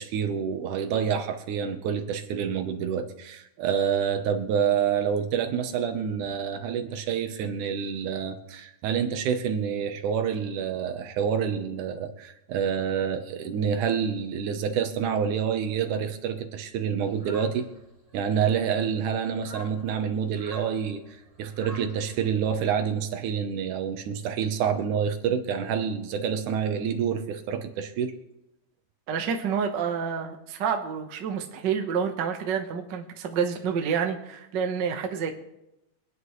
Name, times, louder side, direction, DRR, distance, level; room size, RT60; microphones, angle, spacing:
voice 1, 0.0-17.7 18.1-28.1, right 7 dB, 75° right, 6 dB, 2.5 m, -28 dB
sound 1, 17.1-22.5, left 1 dB, 15° right, 1.2 m, -48 dB
voice 2, 29.1-35.3, right 7 dB, 55° right, 4 dB, 1.2 m, -28 dB
25.5 x 9.5 x 3.2 m, 0.89 s
omnidirectional pair, 3.6 m